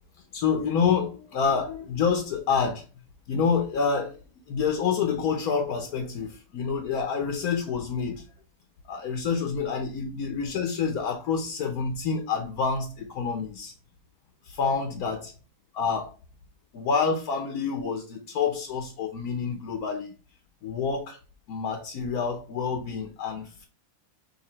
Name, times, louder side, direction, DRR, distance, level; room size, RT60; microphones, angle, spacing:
voice 1, 0.3-2.8 3.3-4.2 4.5-8.2 8.9-13.7 14.4-15.3 15.7-16.1 16.7-20.1 20.6-21.2 21.5-23.6, left 6 dB, 70° left, 1.2 m, -27 dB
6.6 x 2.6 x 3.0 m
omnidirectional pair, 1.7 m